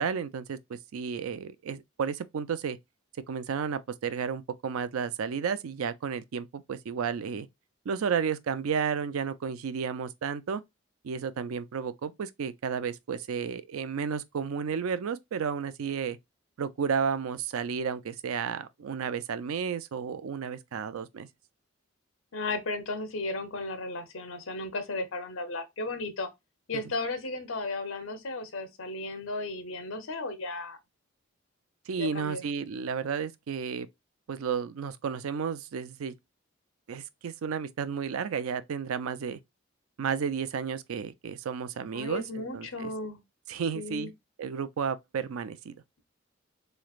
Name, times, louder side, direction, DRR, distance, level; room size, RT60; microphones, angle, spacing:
voice 1, 0.0-2.8 3.3-7.5 7.9-10.6 11.0-16.2 16.6-21.3 31.9-33.9 34.3-36.2 36.9-39.4 40.0-42.9 43.5-44.1 44.4-45.8, right 6 dB, 90° right, 0.4 m, -32 dB
voice 2, 22.3-26.3 26.7-30.8 32.0-32.4 41.9-43.2 43.7-44.1, left 2 dB, 75° left, 0.8 m, -35 dB
3.9 x 3.1 x 2.4 m
head